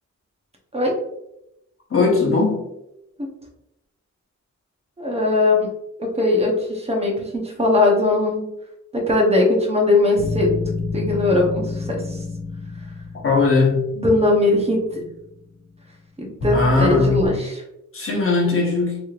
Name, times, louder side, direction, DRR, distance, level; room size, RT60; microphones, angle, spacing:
voice 1, 1.9-2.7 13.1-13.9 16.5-17.3 17.9-19.0, left 3 dB, 45° left, -1 dB, 0.9 m, -19 dB
voice 2, 5.0-5.7 6.0-8.5 8.9-10.5 10.9-12.2 14.0-15.0 16.2-17.6, left 2 dB, 20° right, 0 dB, 0.8 m, -20 dB
sound 1, 10.2-15.3 16.4-17.3, left 3 dB, 85° left, 1.3 m, -28 dB
3.4 x 3.0 x 2.4 m, 0.84 s
wide cardioid pair, 140°, 30 cm